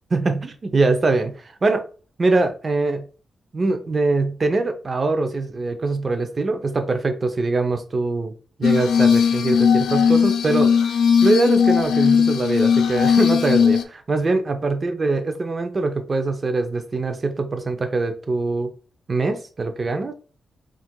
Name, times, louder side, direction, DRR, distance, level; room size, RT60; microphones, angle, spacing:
voice 1, 0.1-1.8 2.2-3.1 3.5-8.3 8.6-10.9 11.2-18.7 19.1-20.1, right 3 dB, 40° right, 0.5 m, -23 dB
Glass, 8.6-13.8, left 6 dB, 85° left, 0.3 m, -17 dB
4.2 x 2.4 x 2.2 m
cardioid pair, 95°, 0 cm